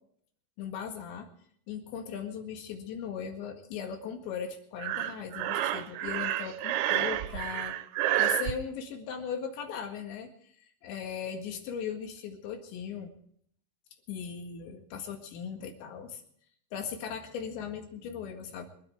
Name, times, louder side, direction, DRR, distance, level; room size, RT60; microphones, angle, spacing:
voice 1, 0.6-1.3 1.7-7.8 8.2-10.3 10.8-13.1 14.1-16.2 16.7-18.7, left 7 dB, 70° left, 5 dB, 4.0 m, -38 dB
Breathing, 4.8-8.5, right 13 dB, 80° right, 2.8 m, -29 dB
25.0 x 10.5 x 4.7 m, 0.63 s
omnidirectional pair, 5.7 m